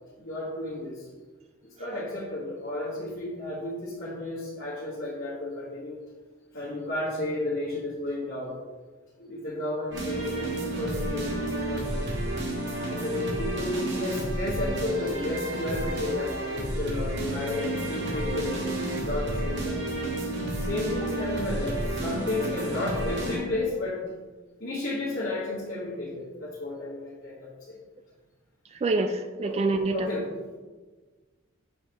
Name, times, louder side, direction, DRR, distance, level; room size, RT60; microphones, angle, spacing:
voice 1, 0.2-1.1 1.6-6.0 6.5-8.5 9.2-11.3 11.7-12.2 12.6-18.6 19.1-19.8 20.6-24.0 24.6-27.8 29.4-29.6 29.9-30.3, left 2 dB, 55° left, -8 dB, 1.5 m, -32 dB
sound 1, 9.9-23.4, right 1 dB, 60° right, 1.5 m, -31 dB
voice 2, 28.7-30.1, right 3 dB, 30° right, 8 dB, 0.3 m, -26 dB
6.7 x 5.5 x 3.0 m, 1.3 s
head